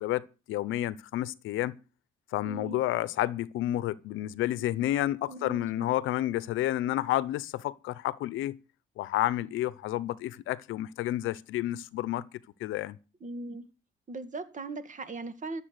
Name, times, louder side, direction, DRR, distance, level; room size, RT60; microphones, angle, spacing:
voice 1, 0.0-1.7 2.3-8.6 9.0-12.2 12.6-13.0, left 14 dB, 90° left, 0.8 m, -30 dB
voice 2, 2.4-2.8 5.3-5.9 13.2-13.7 14.1-15.6, right 3 dB, 40° right, 2.0 m, -39 dB
14.0 x 7.4 x 8.2 m
cardioid pair, 90°, 20 cm